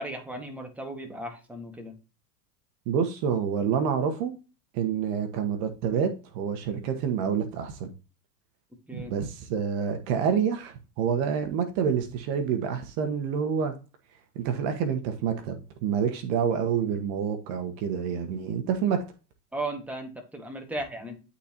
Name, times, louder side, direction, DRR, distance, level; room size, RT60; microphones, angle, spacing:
voice 1, 0.0-1.9 8.9-9.1 19.5-21.2, right 1 dB, 5° right, 1.6 m, -36 dB
voice 2, 2.9-4.3 4.7-7.9 8.9-13.7 14.3-19.0, right 7 dB, 50° right, 1.3 m, -28 dB
11.5 x 4.2 x 2.9 m
hypercardioid pair, 110°, 50 cm